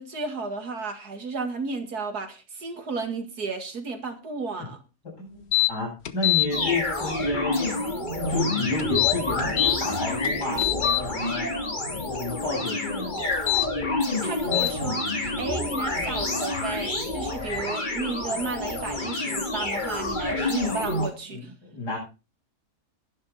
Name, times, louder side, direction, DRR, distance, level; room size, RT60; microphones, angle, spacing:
voice 1, 0.0-4.8 14.2-21.5, right 4 dB, 70° right, 5 dB, 2.6 m, -33 dB
voice 2, 5.2-7.8 8.3-11.5 12.1-13.3 21.3-22.0, left 3 dB, 75° left, -2 dB, 8.7 m, -31 dB
sound 1, 5.5-5.7 6.1-6.5 8.8-9.8 10.2-11.0 13.3-13.7 14.5-14.7, left 18 dB, 50° left, 1.0 m, -22 dB
sound 2, 6.5-21.1, left 2 dB, 30° left, 2.0 m, -28 dB
11.5 x 11.0 x 4.3 m, 0.31 s
omnidirectional pair, 1.8 m